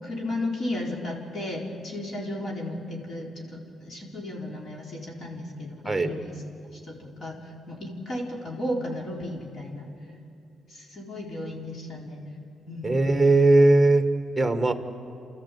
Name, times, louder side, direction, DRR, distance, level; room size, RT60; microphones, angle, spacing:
voice 1, 0.0-6.4 6.7-7.4 7.7-9.9 10.7-12.2 12.7-13.0, left 1 dB, 50° left, -1 dB, 4.2 m, -34 dB
voice 2, 12.8-14.0 14.4-14.7, right 2 dB, 5° right, 8 dB, 1.5 m, -19 dB
30.0 x 13.5 x 8.4 m, 2.5 s
cardioid pair, 115°, 0 cm